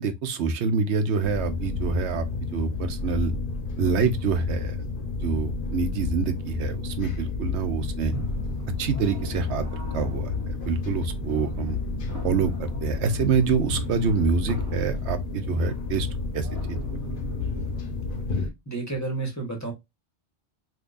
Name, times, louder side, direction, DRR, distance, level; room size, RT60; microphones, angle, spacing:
voice 1, 0.0-2.3 2.5-3.3 3.8-4.7 5.2-8.1 8.8-9.6 9.9-10.3 10.7-11.8 12.2-12.5 12.8-16.1 16.3-16.8, right 5 dB, 90° right, 1.0 m, -26 dB
sound 1, 1.2-18.5, left 3 dB, 55° left, 0.9 m, -31 dB
sound 2, 8.1-18.2, right 1 dB, 20° right, 0.7 m, -41 dB
voice 2, 18.3-19.7, right 3 dB, 15° left, 1.0 m, -32 dB
3.7 x 2.7 x 2.5 m
omnidirectional pair, 1.1 m